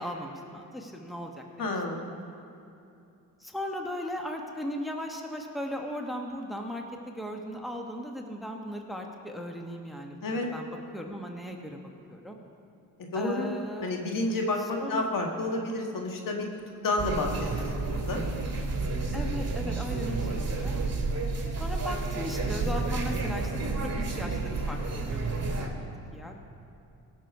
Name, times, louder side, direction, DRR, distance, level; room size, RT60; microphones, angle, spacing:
voice 1, 0.0-1.4 3.4-11.8 12.1-12.4 13.1-13.9 14.6-15.1 19.1-20.8 21.6-25.2 25.6-25.8 26.1-26.4, equal, ahead, 2 dB, 1.2 m, -37 dB
voice 2, 1.6-2.1 10.2-10.5 13.1-13.5 13.8-16.5 16.8-18.2, left 2 dB, 65° left, 1 dB, 1.7 m, -30 dB
sound 1, 17.0-25.7, right 3 dB, 45° right, 2.0 m, -30 dB
18.0 x 6.4 x 5.3 m, 2.6 s
cardioid pair, 80°, 36 cm